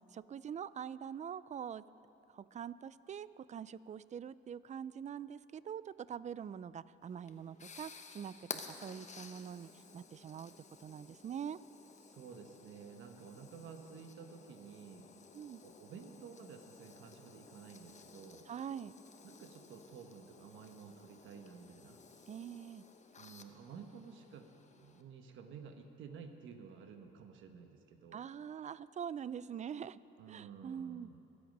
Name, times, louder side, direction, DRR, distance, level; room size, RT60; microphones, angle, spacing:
voice 1, 0.0-1.8 2.3-10.5 10.8-11.6 15.3-15.6 18.5-18.9 22.3-22.8 28.1-30.0 30.3-31.1, right 8 dB, 35° right, 17 dB, 0.4 m, -44 dB
sound 1, 7.0-25.0, left 5 dB, 35° left, 1.0 m, -54 dB
voice 2, 12.0-15.1 15.6-18.4 19.2-22.0 23.2-28.3 30.2-31.2, right 6 dB, 75° right, 5 dB, 1.3 m, -52 dB
26.0 x 8.7 x 5.4 m, 2.7 s
cardioid pair, 90°, 20 cm